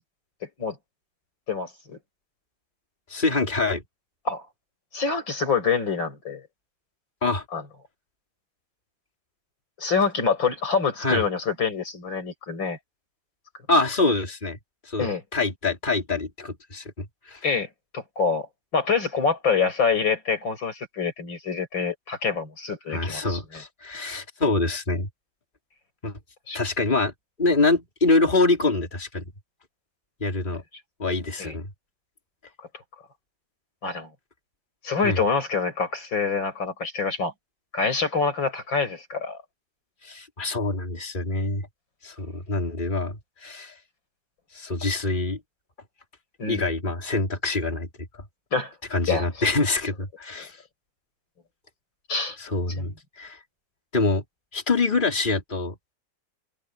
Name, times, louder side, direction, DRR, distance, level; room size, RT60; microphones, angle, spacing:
voice 1, 1.5-2.0 4.3-4.4 4.9-6.4 7.5-7.6 9.8-12.8 15.0-15.2 17.4-17.7 17.9-18.5 18.7-23.4 26.5-26.6 31.4-31.5 33.8-34.1 34.8-37.3 37.7-39.4 46.4-46.6 48.5-48.7 49.1-49.2 52.1-52.4 52.8-52.9, left 5 dB, 90° left, 6.5 m, -26 dB
voice 2, 3.1-3.8 7.2-7.4 11.0-11.3 13.7-14.6 14.9-17.5 22.9-25.1 26.0-26.1 26.5-27.1 27.4-29.2 30.2-30.6 31.0-31.7 35.0-35.2 40.0-41.7 42.0-43.2 43.4-43.8 44.5-45.4 46.5-47.9 48.9-50.6 52.4-53.4 53.9-54.2 54.5-55.8, left 3 dB, 25° left, 3.9 m, -25 dB
omnidirectional pair, 2.0 m